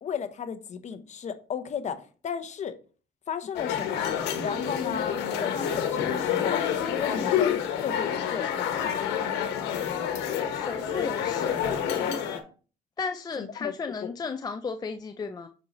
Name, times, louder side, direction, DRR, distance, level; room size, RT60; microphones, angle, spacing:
voice 1, 0.0-2.7 3.3-6.6 7.0-9.1 13.4-13.7 14.0-14.1, left 7 dB, 45° left, 10 dB, 0.9 m, -34 dB
sound 1, 3.5-12.4, left 8 dB, 90° left, 1.2 m, -28 dB
voice 2, 10.5-11.8 13.0-15.5, left 5 dB, 25° left, 6 dB, 0.4 m, -34 dB
7.7 x 5.4 x 3.1 m, 0.37 s
cardioid pair, 110°, 17 cm